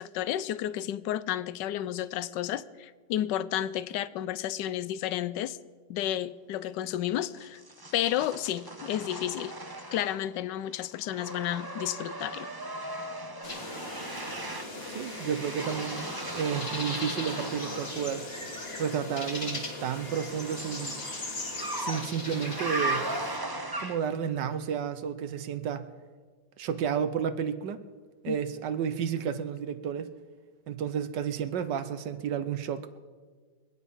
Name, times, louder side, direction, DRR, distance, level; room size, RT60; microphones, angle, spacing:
voice 1, 0.0-5.6 5.9-7.6 7.9-9.5 9.9-12.5 28.3-28.4, left 12 dB, 75° left, 16 dB, 1.3 m, -31 dB
sound 1, 7.4-10.4 10.7-18.0 19.5-24.3, right 2 dB, 20° right, 0.7 m, -38 dB
sound 2, 13.4-23.4, left 2 dB, 35° left, 2.0 m, -38 dB
voice 2, 14.9-18.3 18.8-20.9 21.8-23.0 23.8-25.9 26.6-27.8 28.2-30.1 30.7-32.9, right 8 dB, 75° right, 11 dB, 1.5 m, -31 dB
24.0 x 9.4 x 5.5 m, 1.5 s
omnidirectional pair, 1.9 m